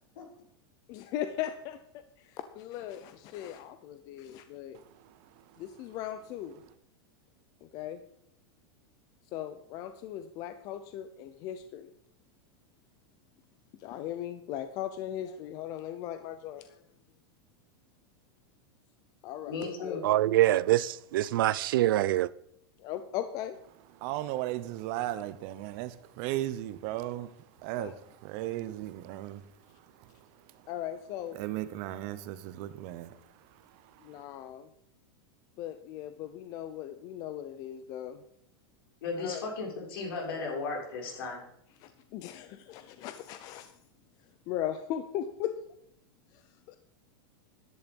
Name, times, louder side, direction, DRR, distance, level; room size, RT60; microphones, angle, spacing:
voice 1, 0.9-4.8 5.6-6.6 7.6-8.0 9.3-11.9 13.8-16.8 19.2-20.2 22.8-23.6 27.8-27.9 30.7-31.4 34.0-34.7 35.6-38.2 39.2-39.4 41.8-43.7 44.5-45.5 46.3-46.8, left 11 dB, 30° left, 0.7 m, -38 dB
voice 2, 4.7-5.7 23.9-30.7 31.3-34.2, right 14 dB, 35° right, 0.8 m, -37 dB
voice 3, 19.5-20.0 39.0-41.4, left 4 dB, 70° left, 6.2 m, -35 dB
voice 4, 20.0-22.3, right 15 dB, 60° right, 0.5 m, -25 dB
14.0 x 11.0 x 5.3 m
supercardioid pair, 175°, 13 cm